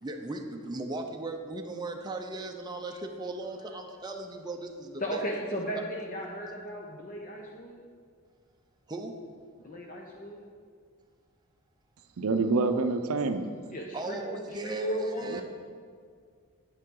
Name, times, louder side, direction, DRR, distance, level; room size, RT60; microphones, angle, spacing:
voice 1, 0.0-5.2 5.7-5.8 8.9-9.1 12.7-12.8 13.9-15.4, right 2 dB, 20° right, 3 dB, 0.5 m, -37 dB
voice 2, 5.0-7.8 9.6-10.4 13.7-15.4, right 1 dB, 40° left, -1 dB, 0.7 m, -35 dB
voice 3, 12.2-13.5 15.3-15.4, right 3 dB, 80° right, 8 dB, 0.5 m, -27 dB
9.4 x 8.1 x 3.8 m, 2.1 s
head